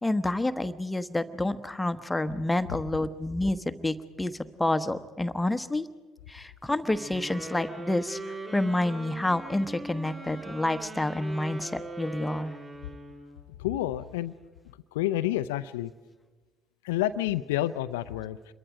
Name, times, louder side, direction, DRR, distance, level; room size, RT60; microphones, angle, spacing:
voice 1, 0.0-4.3 4.6-5.9 6.3-8.2 8.5-12.5, left 1 dB, 10° left, 11 dB, 1.1 m, -28 dB
Sax Tenor - D minor, 6.9-13.4, right 2 dB, 30° right, 5.4 m, -41 dB
voice 2, 13.6-14.3 14.9-15.9 16.8-18.5, left 14 dB, 70° left, 13 dB, 0.6 m, -29 dB
26.5 x 22.5 x 5.1 m, 1.3 s
figure-of-eight pair, 55°, 0 cm